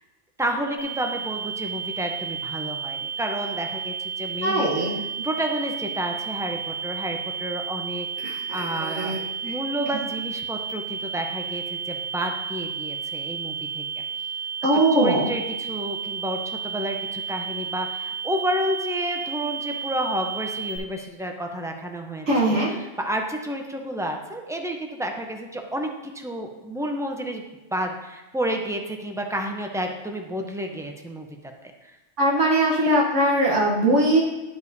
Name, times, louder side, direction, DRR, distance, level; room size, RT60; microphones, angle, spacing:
voice 1, 0.4-4.7 5.2-9.1 9.4-14.0 14.7-25.9 26.1-27.4 27.7-31.3 31.6-31.7, right 1 dB, 5° right, 3 dB, 0.4 m, -30 dB
sound 1, 0.8-20.8, right 6 dB, 10° left, 0.9 m, -32 dB
voice 2, 4.4-5.0 8.2-9.2 14.6-15.3 22.3-22.7 32.2-34.2, right 1 dB, 70° right, -4 dB, 1.4 m, -21 dB
11.5 x 5.3 x 2.6 m, 1.1 s
omnidirectional pair, 1.3 m